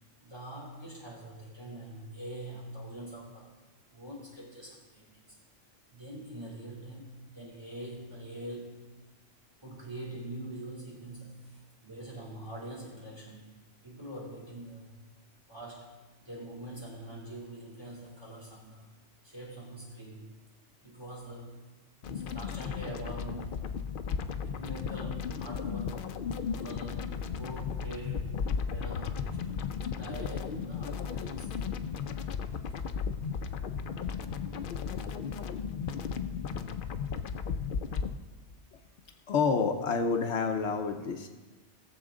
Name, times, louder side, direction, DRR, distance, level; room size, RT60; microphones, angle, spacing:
voice 1, 0.2-3.5 3.9-5.4 5.9-8.8 9.6-14.9 15.5-18.9 19.2-20.3 20.8-21.7 22.0-23.7 24.4-26.1 26.5-29.5 29.9-31.5, right 1 dB, 20° right, -5 dB, 3.2 m, -44 dB
sound 1, 22.0-38.2, left 6 dB, 55° left, 0.6 m, -35 dB
voice 2, 39.3-41.3, left 5 dB, 70° left, 5 dB, 1.1 m, -28 dB
18.5 x 7.1 x 3.8 m, 1.2 s
omnidirectional pair, 1.2 m